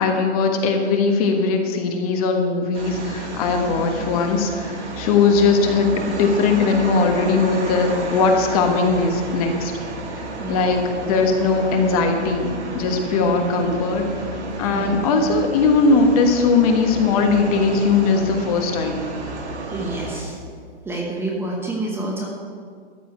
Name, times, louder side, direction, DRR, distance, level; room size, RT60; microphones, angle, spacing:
voice 1, 0.0-9.7 10.5-10.8 11.1-14.0 14.6-19.0, left 4 dB, 30° left, 3 dB, 1.4 m, -19 dB
sound 1, 2.7-20.2, right 2 dB, 75° right, 2.8 m, -32 dB
voice 2, 3.7-4.0 10.4-10.8 13.2-13.5 14.7-14.9 19.7-20.4 20.8-22.3, right 2 dB, 5° right, -2 dB, 1.1 m, -28 dB
13.5 x 5.4 x 8.7 m, 2.1 s
hypercardioid pair, 145°, 35 cm